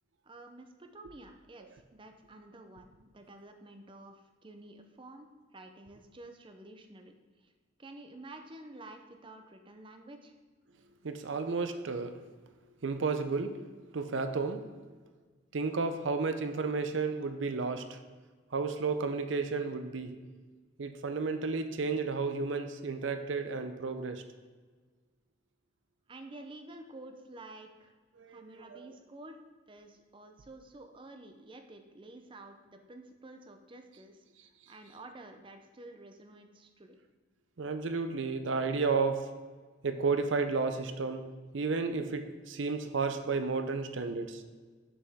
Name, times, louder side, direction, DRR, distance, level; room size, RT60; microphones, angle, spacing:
voice 1, 0.2-7.1 7.4-7.5 7.8-10.3 26.1-27.9 28.3-29.4 29.7-34.2 34.7-37.0, right 2 dB, 25° right, 6 dB, 0.6 m, -50 dB
voice 2, 11.0-12.2 12.8-13.6 13.9-14.6 15.5-18.0 18.5-20.2 20.8-24.2 28.2-28.9 37.6-39.3 39.8-44.4, right 4 dB, 75° right, 8 dB, 0.6 m, -32 dB
6.9 x 5.6 x 3.5 m, 1.4 s
head